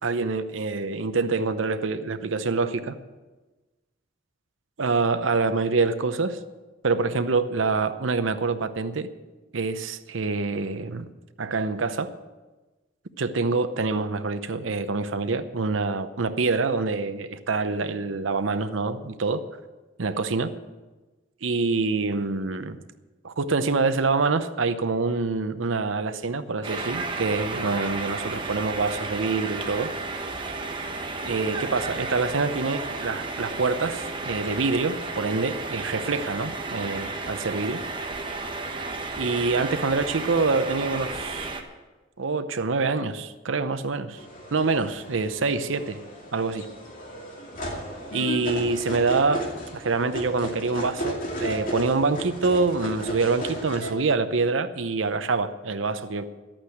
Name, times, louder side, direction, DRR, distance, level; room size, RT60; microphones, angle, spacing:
voice 1, 0.0-3.0 4.8-6.4 6.8-9.1 9.5-11.1 11.4-12.1 13.2-19.4 20.0-20.5 21.4-22.8 23.2-29.9 31.2-37.8 39.2-41.5 42.2-44.2 44.5-46.0 46.3-46.7 48.1-49.4 49.7-56.3, right 4 dB, 85° right, 11 dB, 0.8 m, -26 dB
sound 1, 26.6-41.6, right 3 dB, 25° right, 1.2 m, -33 dB
sound 2, 44.2-53.9, equal, 45° left, 2.5 m, -34 dB
12.0 x 8.8 x 7.8 m, 1.2 s
head